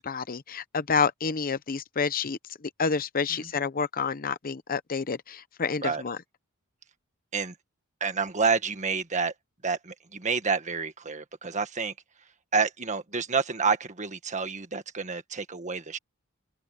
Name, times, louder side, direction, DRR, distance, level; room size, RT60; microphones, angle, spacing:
voice 1, 0.0-2.4 2.8-6.2, left 5 dB, 45° left, 0.7 m, -29 dB
voice 2, 8.0-9.3 9.6-11.9 12.5-16.0, right 5 dB, 35° right, 1.7 m, -29 dB
head